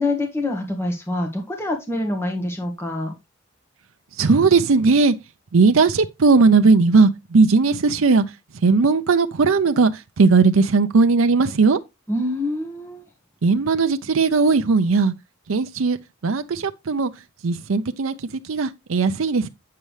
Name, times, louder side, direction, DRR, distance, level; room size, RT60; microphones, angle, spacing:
voice 1, 0.0-3.1 12.1-13.0, left 2 dB, 15° left, 1.5 m, -25 dB
voice 2, 4.2-5.1 5.5-8.2 8.6-11.8 13.4-15.1 15.5-16.0 16.2-17.1 17.4-19.5, right 4 dB, 85° right, 0.6 m, -17 dB
8.5 x 6.8 x 3.2 m
head